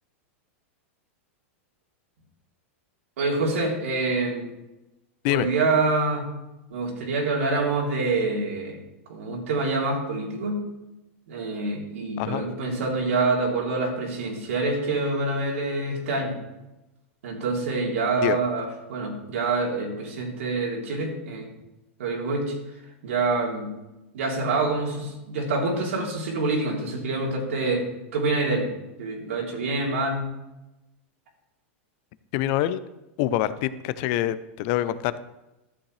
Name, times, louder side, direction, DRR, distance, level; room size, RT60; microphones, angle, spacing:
voice 1, 3.2-4.5 5.3-6.3 6.7-8.8 9.1-10.7 11.3-16.4 17.2-21.5 22.0-22.6 23.0-23.7 24.1-27.9 28.1-28.7 29.0-30.3, right 3 dB, 80° right, -1 dB, 3.3 m, -26 dB
voice 2, 32.3-32.8 33.2-35.2, left 13 dB, 50° left, 14 dB, 0.6 m, -25 dB
13.5 x 8.8 x 3.3 m, 0.98 s
supercardioid pair, 135°, 7 cm